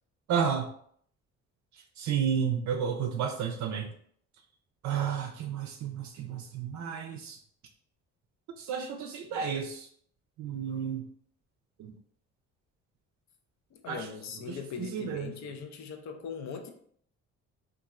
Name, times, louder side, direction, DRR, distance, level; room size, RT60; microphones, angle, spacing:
voice 1, 0.3-0.7 2.0-3.9 4.8-7.4 8.6-9.9 10.4-11.1 11.8-11.9 13.9-14.1 14.5-15.3, right 7 dB, 70° right, 4 dB, 0.4 m, -32 dB
voice 2, 13.7-16.7, left 6 dB, 65° left, 6 dB, 0.5 m, -40 dB
2.9 x 2.4 x 2.4 m, 0.62 s
cardioid pair, 90°, 30 cm